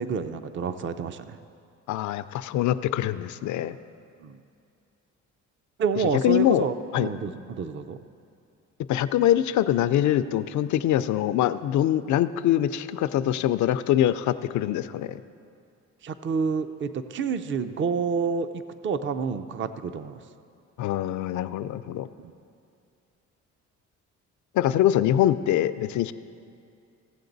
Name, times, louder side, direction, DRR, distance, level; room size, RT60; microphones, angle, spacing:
voice 1, 0.0-1.4 4.2-4.4 5.8-8.0 16.0-20.2 22.2-22.3, right 5 dB, 40° right, 11 dB, 0.5 m, -29 dB
voice 2, 1.9-3.8 6.2-6.7 6.9-7.1 8.9-15.2 20.8-22.1 24.5-26.1, left 12 dB, 70° left, 14 dB, 0.5 m, -24 dB
15.5 x 7.7 x 4.0 m, 2.5 s
cardioid pair, 90°, 30 cm